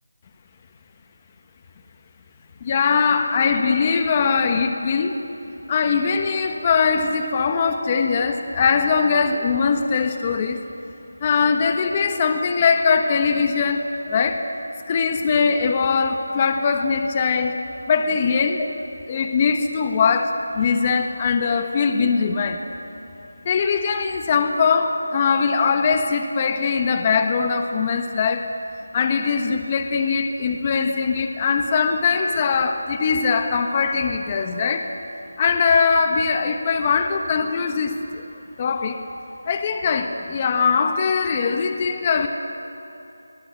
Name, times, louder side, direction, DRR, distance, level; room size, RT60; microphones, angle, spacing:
voice 1, 2.6-5.2 5.7-10.6 11.2-14.5 14.9-17.6 17.9-18.7 19.1-22.6 23.4-28.5 28.9-34.9 35.4-38.2 38.6-39.0 39.5-42.3, left 5 dB, 25° left, 6 dB, 1.2 m, -21 dB
23.5 x 21.0 x 8.6 m, 2.9 s
figure-of-eight pair, 170°, 0 cm